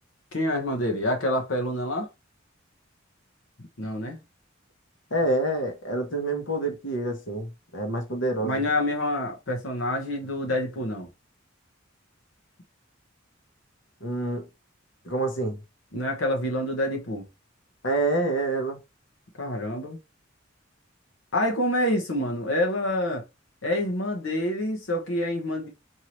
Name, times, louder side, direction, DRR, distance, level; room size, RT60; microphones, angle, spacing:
voice 1, 0.3-2.1 3.8-4.2 8.4-11.1 15.9-17.2 19.4-20.0 21.3-23.2 23.6-25.7, left 1 dB, 85° left, 1.1 m, -27 dB
voice 2, 5.1-8.6 14.0-14.4 15.0-15.6 17.8-18.8, right 2 dB, 65° left, 1.1 m, -27 dB
4.6 x 2.7 x 3.0 m
head